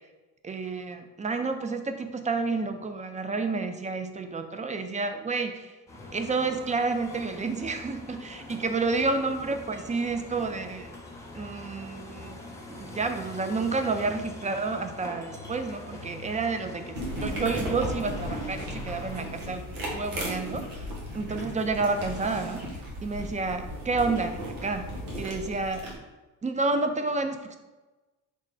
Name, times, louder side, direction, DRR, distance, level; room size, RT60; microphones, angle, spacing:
voice 1, 0.4-5.7 6.1-10.9 11.3-12.4 12.7-19.6 19.9-20.7 21.1-22.6 23.0-24.9 25.2-26.0 26.4-27.6, right 3 dB, 15° right, 7 dB, 0.4 m, -30 dB
sound 1, 5.9-19.3, left 2 dB, 5° left, 1.0 m, -44 dB
sound 2, 15.3-22.7, left 7 dB, 80° left, 0.6 m, -47 dB
sound 3, 16.9-26.0, equal, 80° right, 1.3 m, -36 dB
4.9 x 2.1 x 3.8 m, 1.2 s
supercardioid pair, 55°, 47 cm